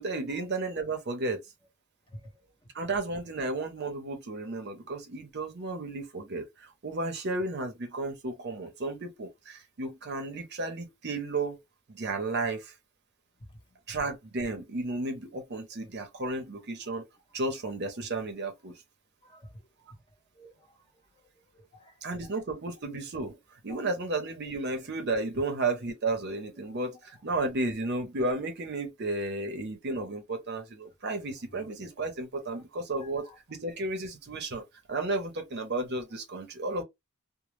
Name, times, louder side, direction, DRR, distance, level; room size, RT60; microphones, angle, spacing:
voice 1, 0.0-1.4 2.7-11.6 11.9-12.7 13.9-17.0 17.3-18.7 22.0-23.4 23.6-34.6 34.9-36.8, right 2 dB, 50° right, 0.6 m, -33 dB
voice 2, 2.1-2.5 13.4-13.8 19.2-20.0 20.3-20.8 21.5-22.3 23.7-23.8 31.3-31.7 32.5-32.6 32.9-33.4, left 1 dB, 20° left, 0.6 m, -52 dB
2.0 x 2.0 x 3.1 m
head